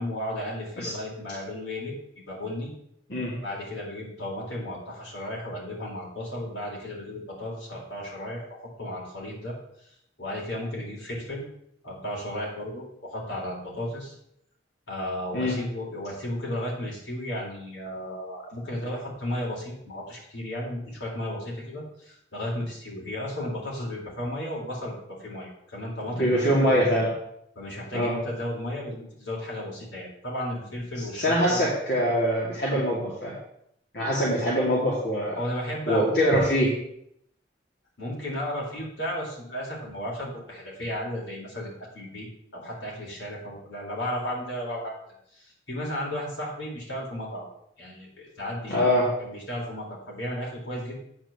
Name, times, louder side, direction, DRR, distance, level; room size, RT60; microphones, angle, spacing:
voice 1, 0.0-2.7 3.4-9.9 10.2-11.4 11.8-14.1 14.9-26.9 27.6-31.7 32.6-32.8 34.1-34.5 35.4-36.4 38.0-42.3 42.5-44.9 45.3-47.5 47.8-48.9 49.2-50.9, left 1 dB, 85° left, -4 dB, 4.0 m, -34 dB
voice 2, 26.2-27.1 27.9-28.2 31.1-33.3 33.9-35.3 35.9-36.7 48.7-49.1, equal, 60° left, -5 dB, 2.4 m, -23 dB
8.9 x 4.7 x 7.2 m, 0.74 s
head